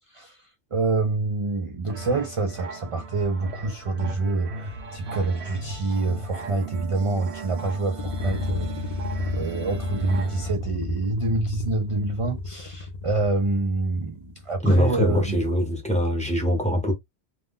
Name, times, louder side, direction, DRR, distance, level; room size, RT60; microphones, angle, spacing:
voice 1, 0.7-15.4, right 3 dB, 55° right, 0.3 m, -27 dB
sound 1, 1.9-10.5, right 3 dB, 75° right, 0.8 m, -37 dB
sound 2, 8.0-14.7, left 3 dB, 50° left, 0.5 m, -32 dB
voice 2, 14.6-16.9, equal, 5° left, 0.7 m, -22 dB
2.5 x 2.2 x 3.5 m
omnidirectional pair, 1.1 m